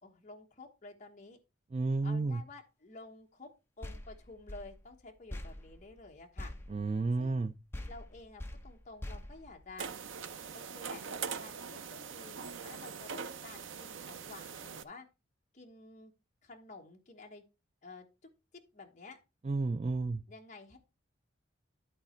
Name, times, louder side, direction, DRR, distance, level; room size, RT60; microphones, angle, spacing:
voice 1, 0.0-1.4 2.0-6.5 7.2-7.5 7.9-9.9 10.5-11.8 12.1-15.1 15.5-16.1 16.4-17.4 17.8-18.0 18.5-19.2 20.3-20.8, left 3 dB, 35° left, 2 dB, 1.2 m, -51 dB
voice 2, 1.7-2.4 6.7-7.5 19.4-20.2, right 3 dB, 30° right, 9 dB, 0.4 m, -31 dB
sound 1, 3.8-7.4 7.7-10.2, left 1 dB, 10° left, 0.7 m, -46 dB
sound 2, 9.8-14.8, right 6 dB, 70° right, 0.6 m, -42 dB
12.5 x 4.1 x 4.3 m, 0.27 s
head